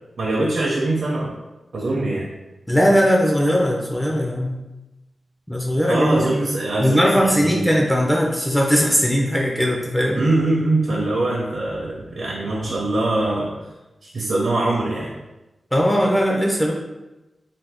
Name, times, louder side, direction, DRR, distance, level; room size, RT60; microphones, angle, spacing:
voice 1, 0.2-1.3 1.7-2.3 5.9-7.6 10.1-13.6 14.0-15.1, right 2 dB, 65° right, -3 dB, 0.5 m, -22 dB
voice 2, 2.7-4.6 5.5-6.2 6.8-10.2 15.7-16.7, equal, 5° left, -1 dB, 0.3 m, -19 dB
2.6 x 2.5 x 3.4 m, 1.0 s
wide cardioid pair, 155°, 0 cm